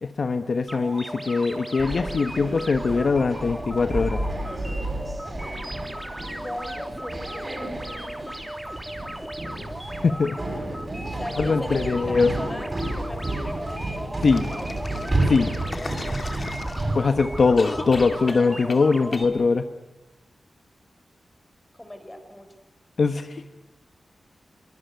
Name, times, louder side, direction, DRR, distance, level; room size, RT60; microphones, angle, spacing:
voice 1, 0.0-4.2 10.0-10.4 11.4-12.3 14.2-14.4 15.2-15.5 16.9-19.6 23.0-23.4, left 4 dB, 55° left, 9 dB, 1.1 m, -22 dB
sound 1, 0.7-19.2, right 1 dB, 5° right, 3.0 m, -37 dB
sound 2, 1.8-18.3, right 2 dB, 25° right, 7.7 m, -31 dB
voice 2, 6.4-9.9 11.1-14.8 17.1-17.4 21.7-22.5, left 1 dB, 10° left, 7 dB, 4.5 m, -39 dB
sound 3, 14.2-17.1 17.6-18.9 19.1-19.3, left 3 dB, 35° left, 2.3 m, -35 dB
25.0 x 24.5 x 9.3 m, 1.0 s
wide cardioid pair, 120°, 0 cm